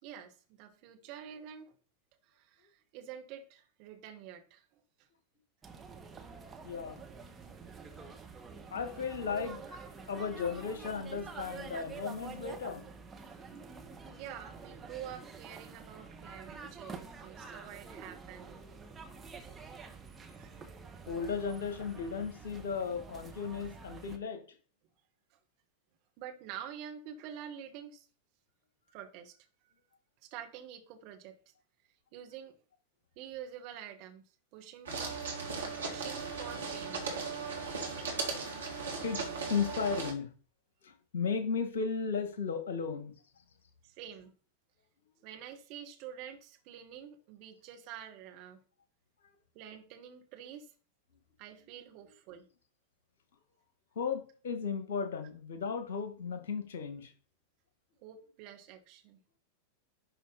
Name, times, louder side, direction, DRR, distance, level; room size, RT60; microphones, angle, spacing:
voice 1, 0.0-1.7 2.2-4.6 5.0-5.1 11.7-11.8 13.3-13.4 14.2-18.7 20.4-20.5 25.3-25.4 26.2-28.1 28.9-29.7 30.2-31.5 32.1-32.6 33.2-34.2 34.5-35.3 35.8-37.2 43.8-44.4 45.2-48.6 49.5-50.7 51.4-52.5 58.0-59.2, right 9 dB, 45° right, 1.8 m, -48 dB
sound 1, 5.6-24.2, right 5 dB, 15° right, 1.3 m, -48 dB
voice 2, 6.6-7.0 8.7-9.8 10.1-12.8 19.2-19.6 21.1-24.4 39.0-40.3 40.8-43.1 53.9-57.1, left 5 dB, 60° left, 1.6 m, -35 dB
sound 2, 34.9-40.1, right 4 dB, 70° right, 2.4 m, -37 dB
11.0 x 5.0 x 4.1 m
figure-of-eight pair, 90°, 0 cm